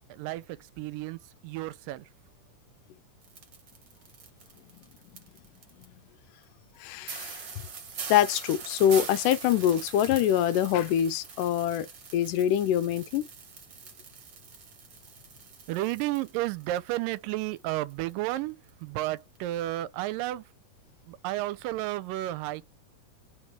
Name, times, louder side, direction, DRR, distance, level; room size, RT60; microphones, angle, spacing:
voice 1, 0.1-2.1 15.7-20.4 21.1-22.7, right 16 dB, 85° right, 2.3 m, -32 dB
sound 1, 3.2-5.9 6.4-6.5 6.7-6.8 7.1-17.2 17.4-18.4 18.7-18.8 19.2-19.4, right 6 dB, 50° right, 1.4 m, -43 dB
voice 2, 6.8-7.4 8.1-11.9 12.1-13.2, left 10 dB, 80° left, 2.0 m, -24 dB
5.0 x 2.9 x 3.5 m
omnidirectional pair, 3.9 m